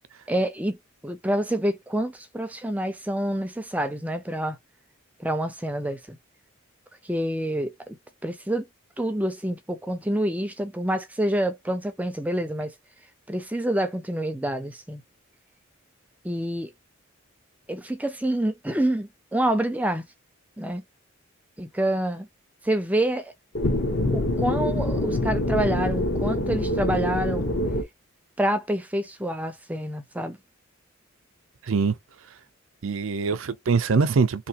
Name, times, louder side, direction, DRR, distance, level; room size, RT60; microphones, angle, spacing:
voice 1, 0.3-0.8 1.0-4.6 5.2-6.2 7.0-7.7 8.2-8.7 9.0-12.7 13.3-15.0 16.2-16.7 17.7-20.0 20.6-20.8 21.6-22.3 22.6-23.3 24.1-27.5 28.4-30.4, right 1 dB, 5° right, 0.4 m, -27 dB
sound 1, 23.5-27.8, left 1 dB, 55° left, 0.9 m, -25 dB
voice 2, 32.8-34.5, right 5 dB, 75° right, 0.5 m, -23 dB
3.3 x 2.7 x 2.8 m
head